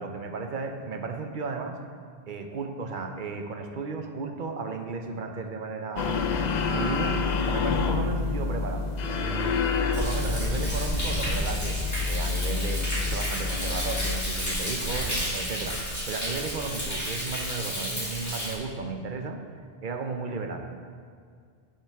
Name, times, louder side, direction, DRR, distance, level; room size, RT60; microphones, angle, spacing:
voice 1, 0.0-1.8 2.3-6.3 6.6-11.8 12.1-19.4 19.8-20.8, right 4 dB, 55° right, 4 dB, 0.8 m, -34 dB
sound 1, 6.0-14.2, left 4 dB, 55° left, 0.5 m, -28 dB
Thunder, 9.9-18.5, equal, 15° left, 1.8 m, -31 dB
9.9 x 5.7 x 3.5 m, 2.1 s
omnidirectional pair, 1.0 m